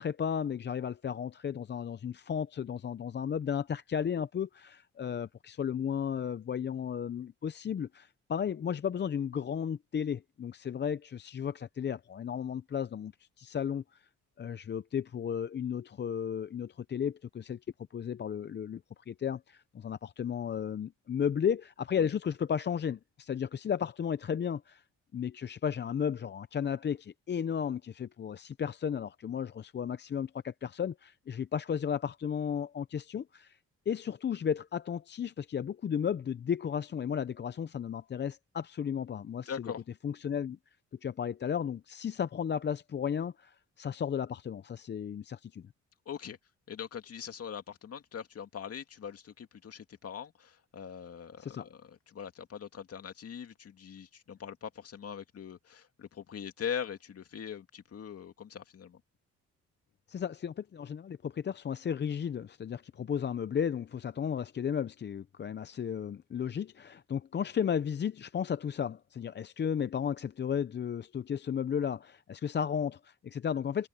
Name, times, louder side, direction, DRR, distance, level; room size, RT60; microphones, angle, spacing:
voice 1, 0.0-14.1 14.4-17.6 17.9-18.8 19.1-24.8 25.1-33.6 33.9-39.7 40.0-40.6 41.0-45.7 51.4-51.7 60.1-73.9, left 8 dB, 35° left, 0.6 m, -34 dB
voice 2, 39.5-39.8 46.1-46.4 46.7-59.0, left 8 dB, 50° left, 2.4 m, -42 dB
cardioid pair, 90°, 30 cm